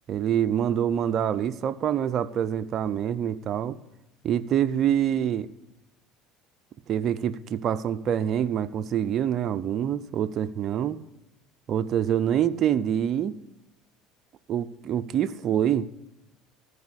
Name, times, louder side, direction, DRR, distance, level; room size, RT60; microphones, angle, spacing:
voice 1, 0.1-3.8 4.2-5.5 6.9-11.0 11.7-13.3 14.5-15.9, right 9 dB, 50° right, 11 dB, 0.5 m, -26 dB
14.0 x 4.9 x 8.4 m, 0.86 s
hypercardioid pair, 75°, 0 cm